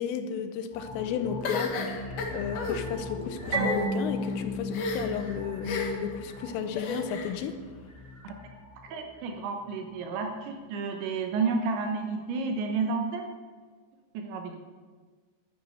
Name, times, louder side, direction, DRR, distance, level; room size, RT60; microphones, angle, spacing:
voice 1, 0.0-1.7 2.3-7.6, left 8 dB, 85° left, 8 dB, 3.3 m, -33 dB
sound 1, 0.7-10.0 10.4-10.5, left 2 dB, 5° left, 3.9 m, -42 dB
sound 2, 1.4-2.8 3.4-3.8 4.7-5.2 5.6-6.1 6.8-7.3, left 3 dB, 60° left, 3.0 m, -32 dB
Marimba xylophone, 3.5-6.2, right 1 dB, 35° right, 1.9 m, -33 dB
voice 2, 8.8-13.3 14.1-14.6, right 4 dB, 75° right, 4 dB, 3.0 m, -31 dB
11.5 x 9.7 x 6.7 m, 1.4 s
omnidirectional pair, 5.9 m